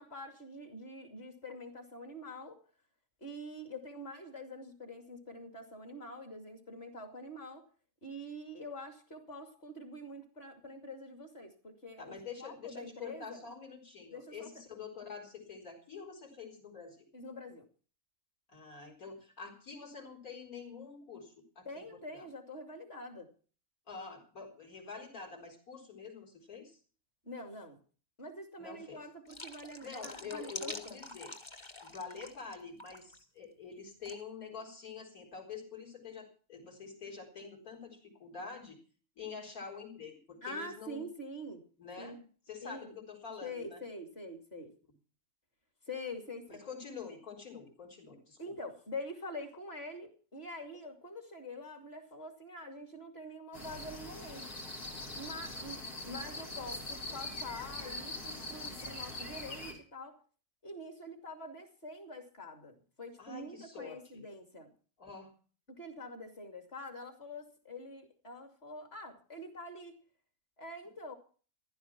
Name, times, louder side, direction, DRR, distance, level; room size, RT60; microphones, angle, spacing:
voice 1, 0.0-2.6 3.2-7.7 8.0-12.1 12.4-13.4 14.1-14.5 17.1-17.7 21.6-23.3 27.2-27.8 28.2-31.0 40.4-41.7 42.0-42.2 42.6-42.9 43.4-44.7 45.9-46.6 48.4-54.5 55.1-60.2 60.6-64.7 65.7-70.0 70.6-71.1, left 1 dB, 40° left, 6 dB, 2.8 m, -45 dB
voice 2, 12.0-17.1 18.5-22.3 23.9-26.8 28.6-29.1 29.8-31.3 31.8-38.8 39.2-41.1 41.8-42.2 42.5-43.8 46.5-48.6 63.2-64.2 65.0-65.3, left 5 dB, 65° left, 0 dB, 4.7 m, -47 dB
sound 1, 29.2-32.5 32.8-33.2 34.0-34.2, left 2 dB, 20° left, 1.2 m, -46 dB
sound 2, 53.5-59.7, left 2 dB, 80° left, 4.2 m, -42 dB
15.0 x 12.0 x 5.9 m, 0.40 s
omnidirectional pair, 1.6 m